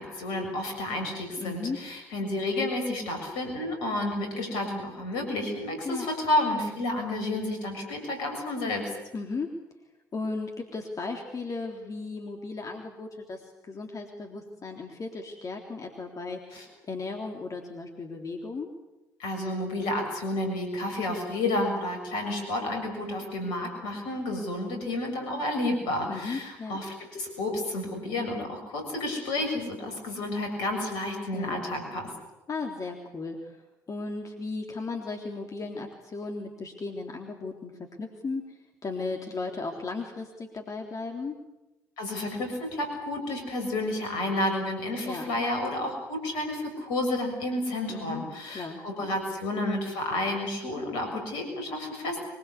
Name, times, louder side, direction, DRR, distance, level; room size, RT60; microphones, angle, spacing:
voice 1, 0.0-8.9 16.5-16.6 19.2-32.1 42.0-52.2, left 1 dB, 70° left, 4 dB, 6.9 m, -31 dB
voice 2, 1.4-1.8 5.8-6.1 9.1-9.5 10.1-16.5 16.9-18.7 26.1-26.8 31.3-31.7 32.5-33.6 33.9-37.7 38.0-41.4 45.0-45.3 47.9-49.2, left 3 dB, 40° left, 3 dB, 3.6 m, -36 dB
24.0 x 22.5 x 8.4 m, 1.0 s
figure-of-eight pair, 45°, 9 cm